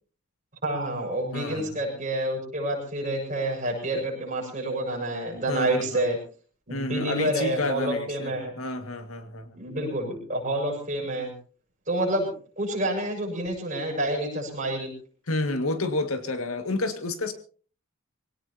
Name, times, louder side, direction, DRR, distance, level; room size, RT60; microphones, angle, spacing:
voice 1, 0.6-6.2 6.7-8.6 9.5-11.3 11.9-12.3 12.6-14.9, right 1 dB, 35° right, -1 dB, 7.1 m, -28 dB
voice 2, 1.3-1.7 5.5-6.1 6.7-9.6 15.3-17.3, left 2 dB, 85° left, 7 dB, 2.0 m, -30 dB
23.5 x 17.5 x 2.9 m, 0.41 s
head